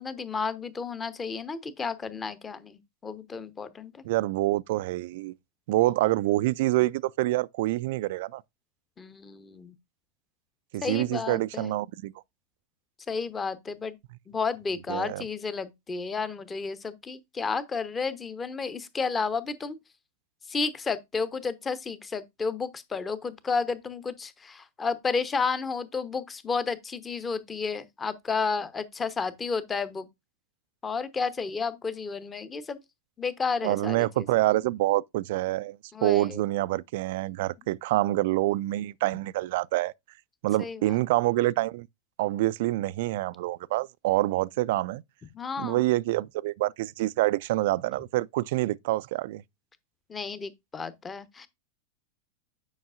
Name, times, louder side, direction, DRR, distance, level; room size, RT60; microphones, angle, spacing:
voice 1, 0.0-4.0 9.0-9.7 10.8-11.7 13.1-14.0 14.3-19.8 20.5-30.1 30.8-32.8 33.2-34.3 35.9-36.4 40.6-41.0 45.3-45.8 50.1-51.5, left 4 dB, 15° left, 0.8 m, -32 dB
voice 2, 4.0-5.3 5.7-8.4 10.7-12.1 14.9-15.2 33.6-39.9 40.4-41.9 42.2-45.0 45.6-49.4, right 17 dB, 50° right, 0.3 m, -26 dB
9.5 x 5.4 x 2.5 m
figure-of-eight pair, 90°, 0 cm